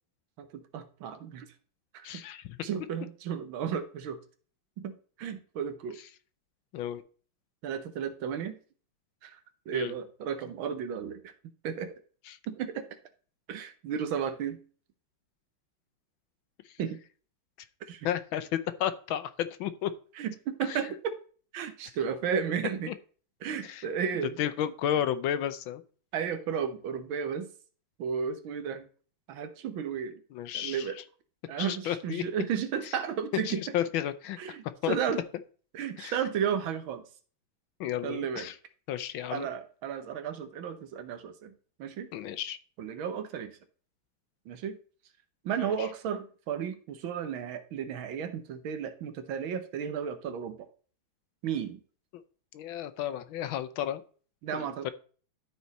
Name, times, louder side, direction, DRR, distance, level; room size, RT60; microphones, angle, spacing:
voice 1, 0.4-1.5 1.9-2.2 2.6-4.2 4.8-6.0 7.6-8.6 9.2-9.4 9.7-11.3 11.6-11.9 12.5-12.9 13.5-14.6 16.8-17.0 17.8-18.1 20.2-21.1 21.5-22.9 23.4-24.4 26.1-27.5 28.0-28.9 29.3-30.2 30.5-31.0 31.5-33.6 34.4-35.2 35.7-37.0 38.0-38.5 39.3-41.5 41.8-42.1 42.8-43.6 44.5-44.8 45.4-50.7 51.4-51.8 54.4-54.9, right 7 dB, 75° right, 10 dB, 1.6 m, -33 dB
voice 2, 2.0-2.5 6.7-7.0 9.7-9.9 12.3-12.4 18.0-19.9 20.7-20.8 22.9-23.0 23.6-23.9 24.4-25.8 30.3-30.9 31.6-32.2 33.4-34.6 34.8-35.0 36.0-36.2 37.8-38.5 38.9-39.5 42.1-42.6 45.6-45.9 52.5-54.0 54.5-54.9, left 10 dB, 75° left, 12 dB, 1.4 m, -32 dB
12.5 x 4.5 x 4.1 m, 0.41 s
omnidirectional pair, 2.3 m